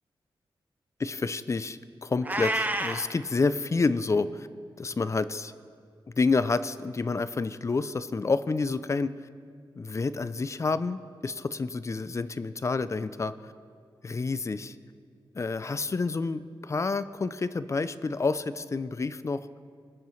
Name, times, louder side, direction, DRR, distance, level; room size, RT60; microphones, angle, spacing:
voice 1, 1.0-4.5 4.8-5.5 6.2-9.1 9.8-13.3 14.0-14.8 15.3-19.4, left 4 dB, 35° left, 15 dB, 0.4 m, -29 dB
Meow, 2.2-3.1, right 2 dB, 20° right, 0.8 m, -29 dB
21.0 x 8.9 x 3.2 m, 2.2 s
cardioid pair, 85°, 9 cm